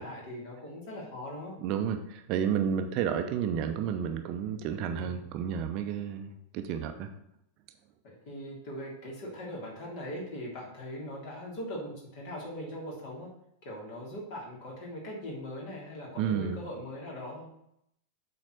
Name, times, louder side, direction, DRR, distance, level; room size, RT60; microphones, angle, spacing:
voice 1, 0.0-1.5 4.9-5.2 8.0-13.3 13.6-17.5, equal, 45° left, -3 dB, 3.2 m, -40 dB
voice 2, 1.6-7.1 16.2-16.6, right 8 dB, 40° right, 6 dB, 0.8 m, -31 dB
7.4 x 4.2 x 6.5 m, 0.77 s
figure-of-eight pair, 90°, 0 cm